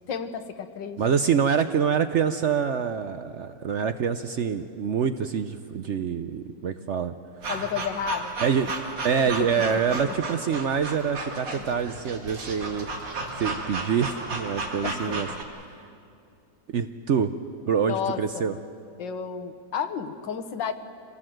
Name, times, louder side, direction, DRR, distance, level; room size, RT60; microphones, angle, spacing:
voice 1, 0.1-1.0 7.5-8.4 9.7-10.1 11.6-11.7 14.8-15.3 17.8-18.6 19.0-20.7, left 7 dB, 80° left, 9 dB, 1.7 m, -32 dB
voice 2, 1.0-7.1 8.4-8.7 9.0-12.9 13.4-15.3 16.7-17.3 17.7-18.6, right 7 dB, 65° right, 9 dB, 0.7 m, -26 dB
sound 1, 7.4-15.4, right 3 dB, 85° right, 2.8 m, -34 dB
26.5 x 17.5 x 7.7 m, 2.5 s
omnidirectional pair, 1.9 m